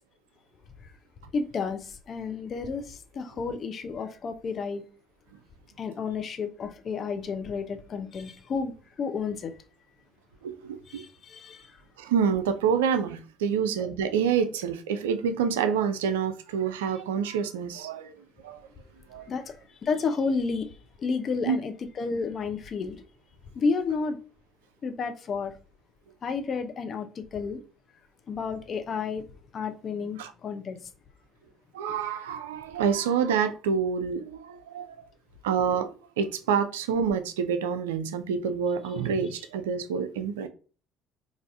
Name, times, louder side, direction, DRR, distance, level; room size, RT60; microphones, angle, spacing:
voice 1, 1.3-4.8 5.8-8.7 9.0-9.5 10.9-11.7 19.3-19.6 19.8-20.7 21.0-23.0 23.5-24.2 24.8-25.5 26.2-27.6 28.3-29.3 29.5-30.8, left 5 dB, 45° left, 0.5 m, -31 dB
voice 2, 10.4-11.0 12.0-18.1 18.4-18.6 19.1-19.3 21.4-21.6 30.2-30.3 31.7-35.0 35.4-40.5, right 7 dB, 75° right, 0.3 m, -27 dB
3.3 x 2.4 x 2.5 m
hypercardioid pair, 55°, 0 cm